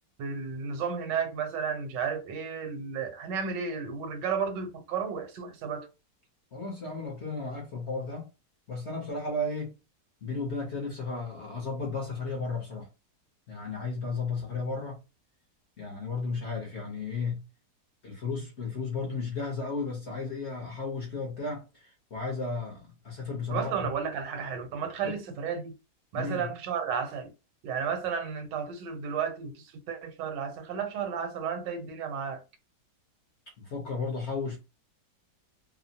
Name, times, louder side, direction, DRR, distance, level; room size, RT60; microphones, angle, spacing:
voice 1, 0.2-5.9 23.5-25.7 26.1-27.3 27.6-32.4, right 6 dB, 80° right, 1.3 m, -33 dB
voice 2, 6.5-8.3 8.7-9.7 10.2-12.9 13.5-15.0 15.8-17.4 18.0-23.9 25.0-25.2 26.1-26.5 33.6-34.6, left 3 dB, 55° left, 0.8 m, -34 dB
2.9 x 2.0 x 2.6 m
omnidirectional pair, 1.9 m